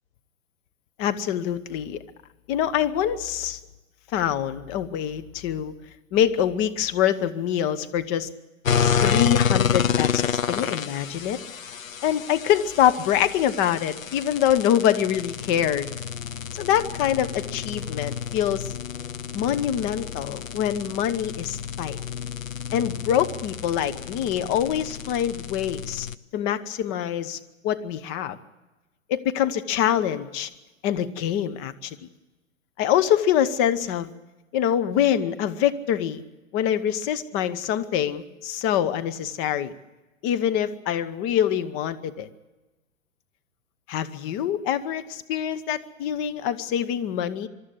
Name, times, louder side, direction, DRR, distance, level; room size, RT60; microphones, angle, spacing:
voice 1, 1.0-2.0 2.5-3.6 4.1-5.7 6.1-8.3 9.0-11.4 12.0-15.9 16.5-18.7 19.3-22.0 22.7-26.1 26.3-27.4 27.6-28.4 29.1-30.5 30.8-32.0 32.8-34.1 34.5-36.2 36.5-39.7 40.2-42.3 43.9-47.5, left 10 dB, 30° left, 11 dB, 1.1 m, -25 dB
sound 1, 8.6-26.2, left 7 dB, 85° left, 0.7 m, -29 dB
23.5 x 13.0 x 9.5 m, 1.1 s
figure-of-eight pair, 105°, 39 cm